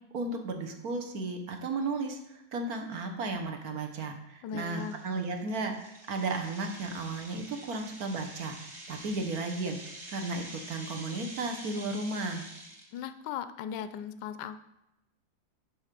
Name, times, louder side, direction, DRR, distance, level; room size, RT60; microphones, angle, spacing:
voice 1, 0.1-8.5 8.9-9.8 10.1-12.4, right 3 dB, 55° right, 4 dB, 1.4 m, -34 dB
sound 1, 2.8-2.9 3.4-3.6 4.0-4.1 4.6-13.0, right 1 dB, 20° right, 1.7 m, -47 dB
voice 2, 4.4-5.0 12.9-14.6, left 8 dB, 70° left, 11 dB, 1.2 m, -38 dB
7.3 x 5.5 x 6.7 m, 0.89 s
omnidirectional pair, 2.1 m